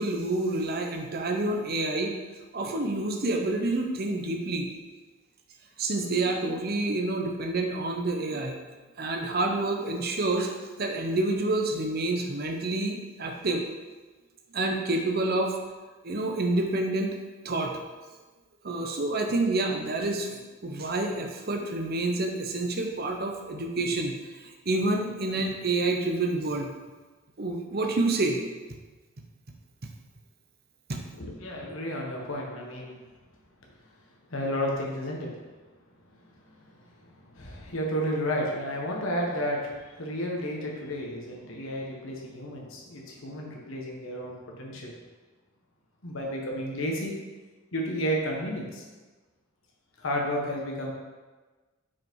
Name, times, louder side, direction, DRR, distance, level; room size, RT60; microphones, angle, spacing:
voice 1, 0.0-2.2 2.5-4.7 5.8-8.6 9.0-13.6 14.5-15.5 16.0-17.2 17.4-17.8 18.6-26.7 27.4-28.4 30.9-31.0, right 2 dB, 45° right, 3 dB, 0.8 m, -28 dB
voice 2, 31.2-33.0 34.3-35.3 37.3-44.9 46.0-47.1 47.7-48.8 50.0-50.9, equal, 75° left, -2 dB, 1.4 m, -32 dB
5.9 x 5.0 x 4.6 m, 1.3 s
head